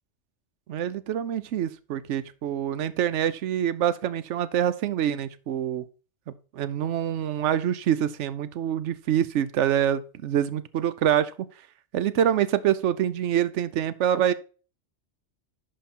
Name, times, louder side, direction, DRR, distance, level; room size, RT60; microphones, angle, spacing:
voice 1, 0.7-5.8 6.5-11.5 11.9-14.3, right 10 dB, 85° right, 1.0 m, -25 dB
11.5 x 5.2 x 4.2 m
omnidirectional pair, 1.2 m